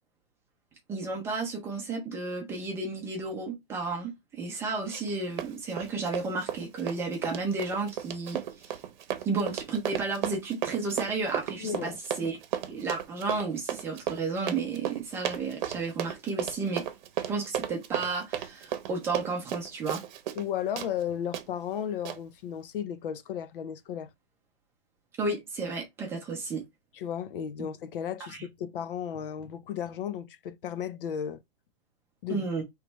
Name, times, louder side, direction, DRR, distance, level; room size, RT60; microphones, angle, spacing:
voice 1, 0.9-8.8 9.2-12.4 12.7-16.9 17.3-20.0 25.2-26.6 28.3-28.4 32.3-32.6, right 3 dB, 10° right, 0.6 m, -32 dB
Run, 4.9-5.1 5.4-20.5 20.8-20.9 21.3-21.4 22.0-22.2, right 10 dB, 50° right, 0.8 m, -34 dB
voice 2, 11.6-12.0 20.3-24.1 26.9-31.4 32.2-32.5, left 9 dB, 60° left, 0.6 m, -34 dB
4.8 x 3.2 x 3.0 m
supercardioid pair, 170°, 31 cm